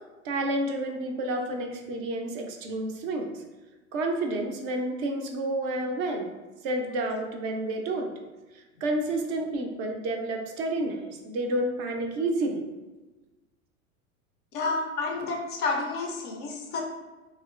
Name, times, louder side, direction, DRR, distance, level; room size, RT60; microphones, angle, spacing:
voice 1, 0.2-3.3 3.9-6.3 6.6-8.1 8.8-12.6, right 1 dB, 40° right, 3 dB, 0.4 m, -30 dB
voice 2, 14.5-16.9, left 3 dB, 25° left, 0 dB, 0.3 m, -30 dB
2.9 x 2.2 x 2.3 m, 1.2 s
hypercardioid pair, 95°, 42 cm